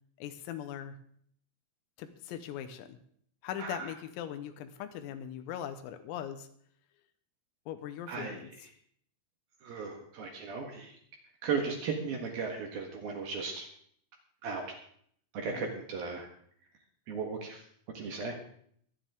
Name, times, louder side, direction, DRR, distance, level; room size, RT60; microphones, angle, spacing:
voice 1, 0.2-1.0 2.0-3.0 3.4-6.5 7.7-8.5 15.5-15.7, left 10 dB, 90° left, 9 dB, 3.8 m, -40 dB
voice 2, 3.6-3.9 8.1-8.6 9.6-10.9 11.4-13.7 14.4-14.7 15.3-16.3 17.1-17.6 17.9-18.4, right 5 dB, 60° right, 2 dB, 2.9 m, -36 dB
23.5 x 10.0 x 3.7 m, 0.63 s
omnidirectional pair, 5.9 m